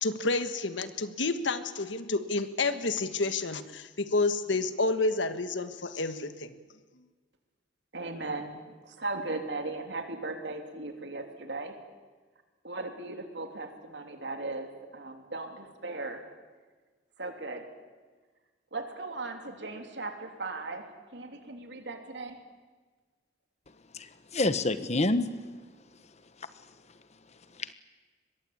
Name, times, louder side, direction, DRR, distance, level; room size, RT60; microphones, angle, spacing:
voice 1, 0.0-6.5, left 3 dB, 85° left, 10 dB, 1.5 m, -29 dB
voice 2, 7.9-11.7 12.6-16.2 17.2-17.7 18.7-22.4, right 2 dB, 70° right, 5 dB, 3.1 m, -37 dB
voice 3, 23.9-25.3 27.6-27.7, left 2 dB, 35° left, 12 dB, 1.1 m, -28 dB
24.0 x 21.5 x 8.8 m, 1.4 s
head